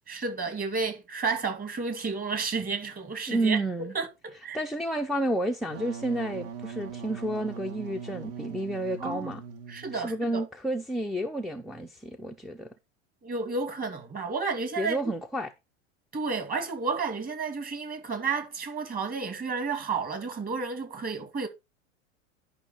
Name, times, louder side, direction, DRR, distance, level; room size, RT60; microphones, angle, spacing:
voice 1, 0.1-3.6 3.9-4.6 9.0-9.4 9.7-10.4 13.2-15.0 16.1-21.5, right 4 dB, 20° right, 2.4 m, -31 dB
voice 2, 3.3-3.9 4.5-9.4 9.9-12.7 14.8-15.5, right 1 dB, ahead, 0.4 m, -30 dB
Wind instrument woodwind instrument, 5.6-10.2, right 6 dB, 55° right, 1.7 m, -41 dB
11.5 x 5.7 x 4.3 m
hypercardioid pair, 125°, 39 cm